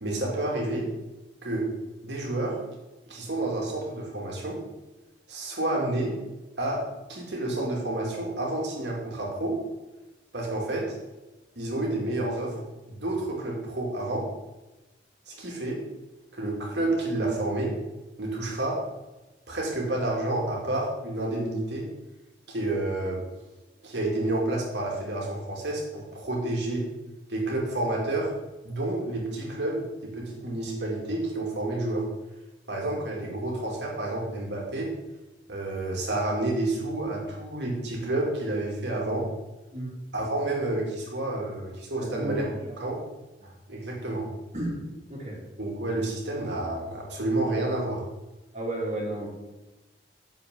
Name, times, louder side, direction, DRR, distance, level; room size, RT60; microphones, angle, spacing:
voice 1, 0.0-0.9 1.4-1.7 2.0-2.6 3.1-4.6 5.3-6.1 6.6-9.6 10.3-11.0 11.6-14.3 15.3-15.8 16.3-17.7 18.2-18.8 19.5-21.9 22.5-23.2 23.8-26.9 27.3-28.3 28.6-32.1 32.7-34.9 35.5-39.3 40.1-42.5 42.8-43.0 43.4-44.3 45.6-48.0, right 2 dB, 80° right, -2 dB, 2.6 m, -29 dB
voice 2, 41.9-42.5 44.5-44.8 45.1-45.4 48.5-49.3, right 1 dB, 35° right, -4 dB, 2.6 m, -32 dB
8.2 x 7.0 x 3.9 m, 1.1 s
head